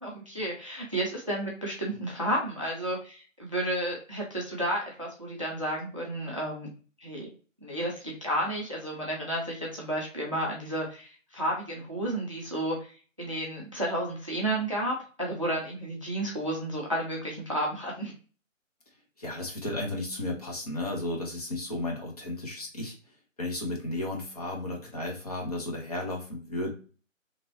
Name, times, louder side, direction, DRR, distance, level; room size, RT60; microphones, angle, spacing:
voice 1, 0.0-6.7 7.0-7.3 7.6-18.1, right 1 dB, 25° right, -2 dB, 0.5 m, -32 dB
voice 2, 19.2-22.9 23.4-26.7, left 2 dB, 30° left, -1 dB, 0.7 m, -34 dB
3.0 x 2.9 x 2.5 m, 0.37 s
figure-of-eight pair, 145°, 39 cm